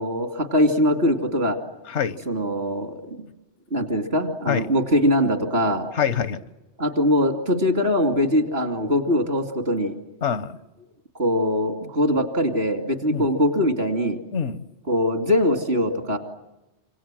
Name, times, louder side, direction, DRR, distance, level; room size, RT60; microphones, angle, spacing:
voice 1, 0.0-1.6 2.3-2.9 3.7-5.9 6.8-9.9 11.1-14.2 14.9-16.2, left 1 dB, 60° right, 7 dB, 2.9 m, -22 dB
voice 2, 6.0-6.4 10.2-10.6 13.1-13.3 14.3-14.6, left 7 dB, 80° left, 14 dB, 1.4 m, -25 dB
27.5 x 26.0 x 7.6 m, 1.0 s
omnidirectional pair, 1.2 m